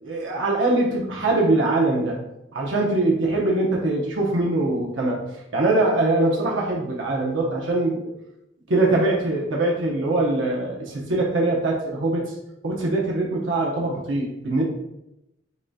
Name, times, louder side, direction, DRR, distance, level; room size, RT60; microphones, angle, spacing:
voice 1, 0.0-2.2 2.5-5.2 5.5-8.1 8.7-12.3 12.6-14.6, right 2 dB, 90° right, -2 dB, 0.9 m, -22 dB
8.0 x 2.7 x 2.3 m, 0.87 s
head